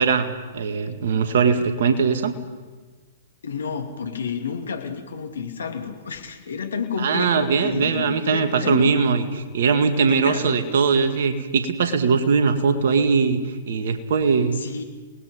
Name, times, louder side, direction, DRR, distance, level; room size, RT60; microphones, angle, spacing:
voice 1, 0.0-2.3 7.0-13.4 13.7-14.6, right 5 dB, 60° right, 8 dB, 2.1 m, -20 dB
voice 2, 3.4-8.9 10.2-10.7 14.5-14.8, left 6 dB, 75° left, 6 dB, 2.6 m, -30 dB
29.0 x 19.5 x 5.3 m, 1.3 s
figure-of-eight pair, 110°, 0 cm